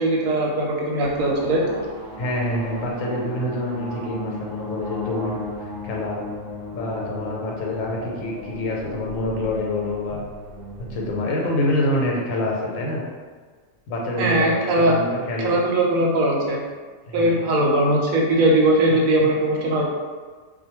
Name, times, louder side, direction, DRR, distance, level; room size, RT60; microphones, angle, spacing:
voice 1, 0.0-1.8 14.2-15.0 15.4-16.6 17.1-19.8, right 1 dB, 85° right, -2 dB, 1.0 m, -20 dB
sound 1, 1.0-11.2, left 1 dB, 5° left, 0.4 m, -36 dB
voice 2, 2.2-6.2 6.7-10.2 10.9-13.0 13.9-15.6 17.1-17.4 18.9-19.3, left 1 dB, 80° left, -2 dB, 1.0 m, -26 dB
2.4 x 2.1 x 3.0 m, 1.5 s
omnidirectional pair, 1.4 m